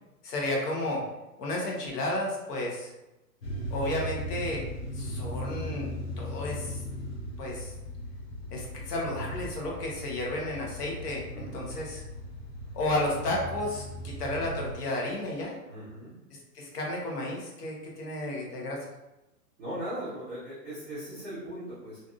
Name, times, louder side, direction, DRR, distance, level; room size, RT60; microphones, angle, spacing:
voice 1, 0.2-1.0 1.4-2.9 3.7-4.6 4.9-5.9 6.2-6.8 7.4-7.7 8.5-12.0 12.7-15.6 16.5-18.8, left 1 dB, 75° left, -2 dB, 1.2 m, -32 dB
sound 1, 3.4-14.7, left 1 dB, 45° left, 0.5 m, -38 dB
voice 2, 11.3-11.7 15.7-16.1 19.6-22.0, right 1 dB, 5° right, -18 dB, 0.5 m, -39 dB
3.3 x 2.6 x 2.5 m, 0.98 s
hypercardioid pair, 155°, 48 cm